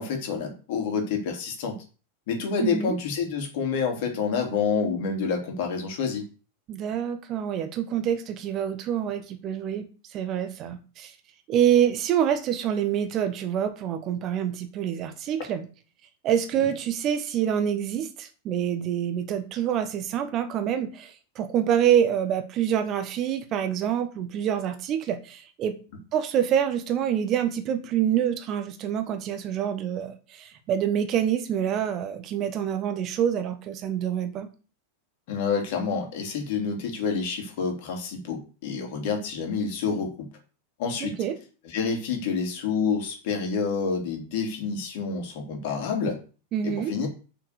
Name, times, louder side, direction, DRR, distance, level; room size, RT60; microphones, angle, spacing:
voice 1, 0.0-1.8 2.3-6.2 35.3-40.3 40.8-41.1 41.6-46.2 46.6-47.1, left 5 dB, 50° left, 3 dB, 3.5 m, -28 dB
voice 2, 2.6-3.0 6.7-11.1 11.5-15.7 16.2-25.8 26.1-34.5 41.0-41.4 46.5-46.9, right 9 dB, 35° right, 9 dB, 1.4 m, -26 dB
7.4 x 6.7 x 6.9 m, 0.36 s
figure-of-eight pair, 90°, 0 cm